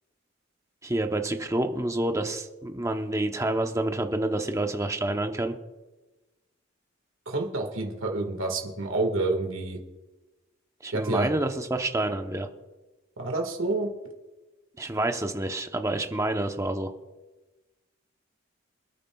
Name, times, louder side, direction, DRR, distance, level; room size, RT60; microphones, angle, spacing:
voice 1, 0.8-5.5 10.8-12.5 14.8-16.9, right 1 dB, 15° right, 5 dB, 0.8 m, -28 dB
voice 2, 7.3-9.8 10.9-11.3 13.2-13.9, right 2 dB, 90° right, 2 dB, 1.7 m, -28 dB
27.5 x 9.3 x 2.3 m, 1.1 s
head